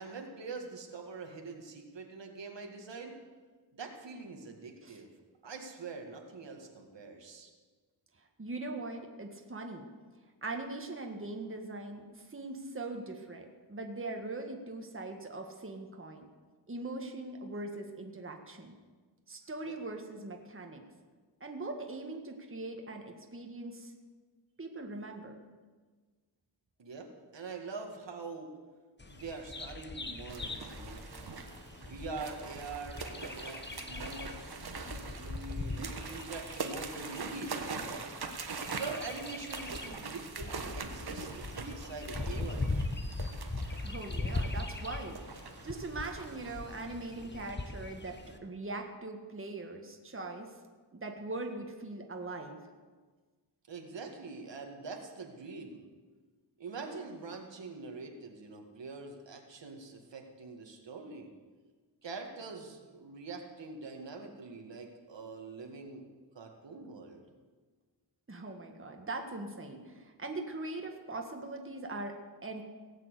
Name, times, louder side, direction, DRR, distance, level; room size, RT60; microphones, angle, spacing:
voice 1, 0.0-3.1 3.7-5.1 5.4-7.5 19.6-19.8 26.8-28.5 29.1-31.1 31.8-34.6 34.9-38.0 38.7-41.3 41.6-43.2 53.7-55.8 56.6-61.3 62.0-66.0 66.3-67.2, right 4 dB, 80° right, 2 dB, 2.0 m, -44 dB
voice 2, 8.4-9.9 10.4-16.3 16.7-18.8 19.3-20.8 21.4-23.9 24.6-25.4 43.8-45.4 45.6-50.5 50.9-52.6 68.3-72.6, right 2 dB, 30° right, 3 dB, 1.7 m, -41 dB
Bird vocalization bird call bird song, 29.0-48.4, left 2 dB, 25° left, 1.2 m, -41 dB
sound 1, 30.3-47.3, right 4 dB, 60° right, 1.5 m, -43 dB
18.0 x 7.5 x 8.2 m, 1.4 s
wide cardioid pair, 90°, 43 cm